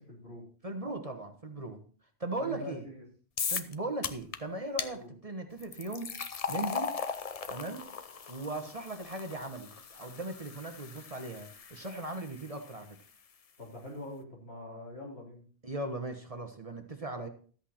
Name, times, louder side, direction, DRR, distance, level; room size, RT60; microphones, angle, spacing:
voice 1, 0.1-0.4 0.8-0.9 2.4-3.0 4.9-5.1 13.6-15.4, left 1 dB, 65° left, -3 dB, 4.0 m, -44 dB
voice 2, 0.6-1.8 2.2-2.9 3.5-6.1 6.5-6.9 7.5-7.9 8.3-13.0 15.6-17.3, right 2 dB, 35° right, 6 dB, 1.2 m, -38 dB
sound 1, 3.4-3.7 4.0-4.4 4.8-4.9 5.6-12.7, left 6 dB, 40° left, 0.6 m, -38 dB
13.0 x 8.2 x 4.3 m, 0.43 s
omnidirectional pair, 1.1 m